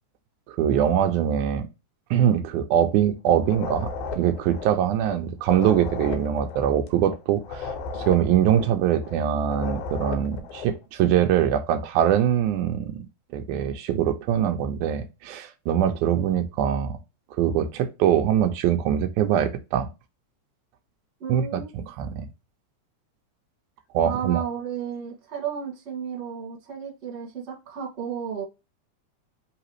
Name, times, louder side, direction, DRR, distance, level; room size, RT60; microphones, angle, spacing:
voice 1, 0.5-1.7 2.1-3.9 4.2-7.7 7.9-13.0 13.3-17.0 17.4-19.9 21.3-22.3 23.9-24.4, right 9 dB, 85° right, 2.0 m, -23 dB
sound 1, 3.4-10.8, left 4 dB, 80° left, 2.2 m, -35 dB
voice 2, 21.2-21.7 24.0-28.4, right 7 dB, 30° right, 1.4 m, -33 dB
4.8 x 3.2 x 3.0 m
omnidirectional pair, 3.5 m